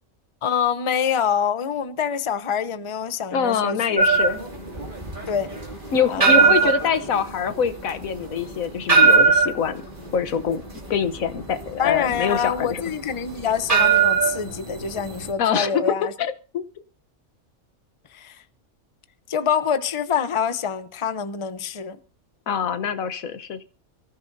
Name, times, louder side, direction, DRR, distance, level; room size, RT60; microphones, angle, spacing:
voice 1, 0.4-4.1 5.3-5.5 6.1-6.7 11.8-16.1 18.1-18.4 19.3-22.0, left 7 dB, 30° left, 0.7 m, -26 dB
voice 2, 3.3-4.4 5.9-9.8 10.1-10.6 10.9-12.8 15.4-15.9 16.2-16.6 22.5-23.6, left 7 dB, 90° left, 1.4 m, -24 dB
sound 1, 4.0-15.3, right 5 dB, 35° right, 2.9 m, -21 dB
24.0 x 14.5 x 2.7 m
omnidirectional pair, 1.4 m